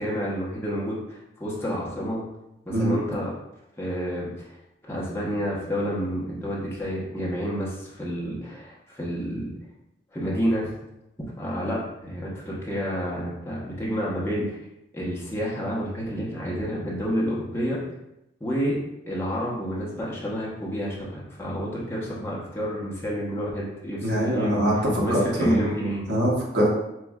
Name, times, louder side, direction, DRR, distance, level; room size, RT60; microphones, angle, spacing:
voice 1, 0.0-2.2 2.7-3.3 3.8-4.5 4.9-9.5 10.1-10.7 11.4-14.6 14.9-17.8 18.4-18.8 19.1-24.7 25.0-26.1, equal, 15° left, -5 dB, 0.9 m, -29 dB
voice 2, 24.0-25.6 26.1-26.7, equal, 75° right, -4 dB, 1.2 m, -23 dB
7.5 x 2.5 x 2.4 m, 0.87 s
head